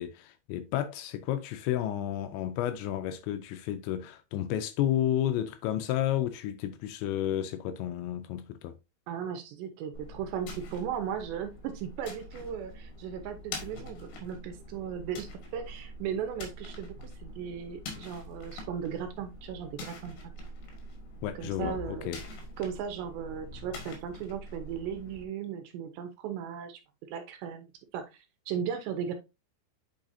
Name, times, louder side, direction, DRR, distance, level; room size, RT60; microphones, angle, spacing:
voice 1, 0.0-8.7 21.2-22.2, left 11 dB, 80° left, 2.7 m, -31 dB
voice 2, 9.1-20.2 21.4-22.1 22.6-26.8 27.1-29.1, right 8 dB, 75° right, 2.8 m, -37 dB
sound 1, 9.9-25.2, left 2 dB, 65° left, 3.9 m, -44 dB
8.8 x 5.6 x 2.7 m
omnidirectional pair, 5.5 m